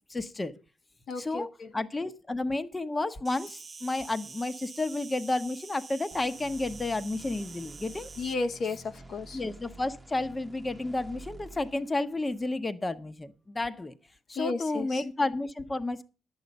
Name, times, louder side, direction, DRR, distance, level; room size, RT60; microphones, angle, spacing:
voice 1, 0.1-0.5 1.2-8.1 8.6-8.8 9.3-13.9 14.3-16.0, left 2 dB, 20° left, 0.9 m, -31 dB
voice 2, 1.1-1.7 8.2-9.4 14.3-15.0, left 3 dB, 55° left, 0.9 m, -33 dB
Insect, 3.3-8.3, right 4 dB, 35° right, 0.5 m, -46 dB
sound 1, 6.1-12.6, right 2 dB, 10° right, 0.9 m, -50 dB
11.0 x 8.0 x 5.3 m
cardioid pair, 90°, 0 cm